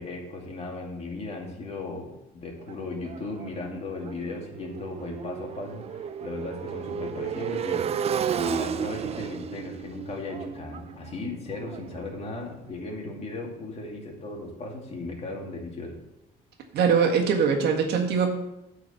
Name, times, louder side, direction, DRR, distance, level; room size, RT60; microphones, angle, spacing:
voice 1, 0.0-16.0, left 3 dB, 40° left, -1 dB, 2.4 m, -36 dB
Motorcycle, 2.7-12.5, right 8 dB, 40° right, 0.4 m, -33 dB
voice 2, 16.7-18.3, right 6 dB, 75° right, 2 dB, 1.7 m, -22 dB
8.7 x 4.6 x 7.0 m, 0.88 s
cardioid pair, 110°, 17 cm